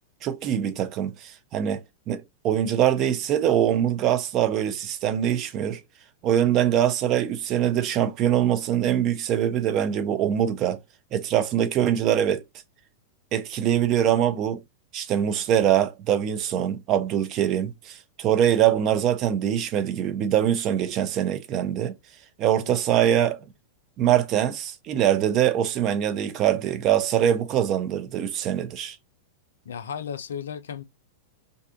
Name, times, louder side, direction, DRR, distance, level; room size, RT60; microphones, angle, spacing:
voice 1, 0.2-1.8 2.1-5.8 6.2-10.8 11.1-12.4 13.3-14.6 14.9-21.9 22.4-23.4 24.0-29.0, right 10 dB, 40° right, 0.5 m, -23 dB
voice 2, 29.7-30.8, left 8 dB, 70° left, 0.4 m, -34 dB
2.5 x 2.2 x 2.5 m
figure-of-eight pair, 95°, 0 cm